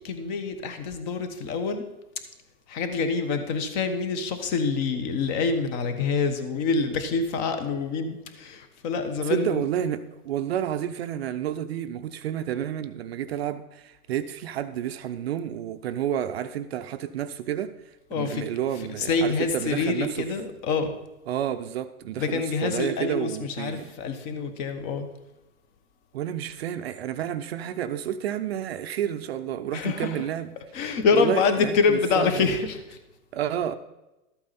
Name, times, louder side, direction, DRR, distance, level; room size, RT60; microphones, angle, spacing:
voice 1, 0.0-1.8 2.7-9.6 18.1-18.5 19.0-20.9 22.2-25.1 29.7-30.2 30.7-32.8, left 5 dB, 30° left, 1.2 m, -26 dB
voice 2, 9.2-20.3 21.3-23.9 26.1-32.5 33.3-33.7, right 10 dB, 45° right, 0.6 m, -30 dB
13.0 x 8.5 x 4.2 m
hypercardioid pair, 150°, 44 cm